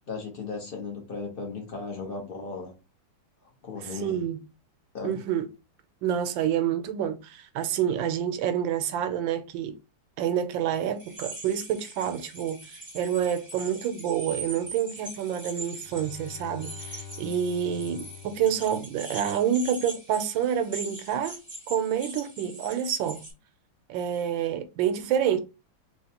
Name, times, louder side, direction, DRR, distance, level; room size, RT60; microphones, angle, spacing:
voice 1, 0.1-2.7 3.6-4.2 4.9-5.2, left 4 dB, 45° left, 0.7 m, -36 dB
voice 2, 3.8-4.4 5.0-5.5 6.0-9.7 10.2-21.4 21.7-23.2 23.9-25.4, right 9 dB, 80° right, 1.3 m, -28 dB
sound 1, 11.0-23.3, right 2 dB, 20° right, 0.6 m, -42 dB
Bowed string instrument, 15.7-19.5, left 7 dB, 90° left, 1.4 m, -45 dB
3.3 x 3.1 x 2.8 m
omnidirectional pair, 2.1 m